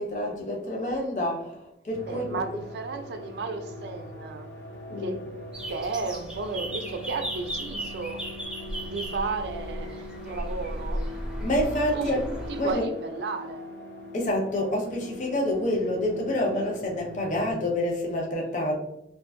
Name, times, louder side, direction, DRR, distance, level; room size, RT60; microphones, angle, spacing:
voice 1, 0.0-2.4 4.9-5.2 11.4-12.2 12.6-12.9 14.1-18.7, left 1 dB, 45° left, 0 dB, 0.5 m, -27 dB
sound 1, 1.9-17.5, left 1 dB, 65° left, 0.8 m, -42 dB
voice 2, 2.1-4.5 5.0-5.2 5.7-8.2 8.8-11.0 11.9-12.2 12.5-13.6, right 4 dB, 70° right, 7 dB, 0.4 m, -33 dB
sound 2, 5.5-12.8, right 1 dB, 5° right, 0.4 m, -36 dB
2.5 x 2.5 x 2.4 m, 0.85 s
head